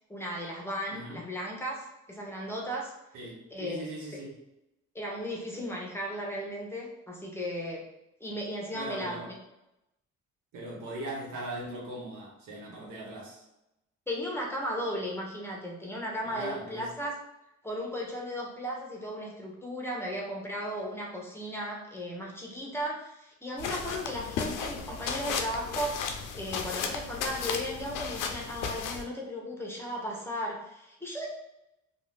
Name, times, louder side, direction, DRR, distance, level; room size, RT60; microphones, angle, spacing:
voice 1, 0.1-2.9 3.5-3.9 4.9-7.8 8.2-9.4 14.1-17.1 17.6-31.3, equal, 10° left, -2 dB, 0.8 m, -36 dB
voice 2, 0.9-1.2 3.1-4.4 8.7-9.3 10.5-13.4 16.2-16.9, right 1 dB, 85° right, -3 dB, 1.1 m, -40 dB
sound 1, 23.6-29.0, left 6 dB, 85° left, 0.5 m, -34 dB
2.6 x 2.3 x 3.3 m, 0.89 s
cardioid pair, 90°, 30 cm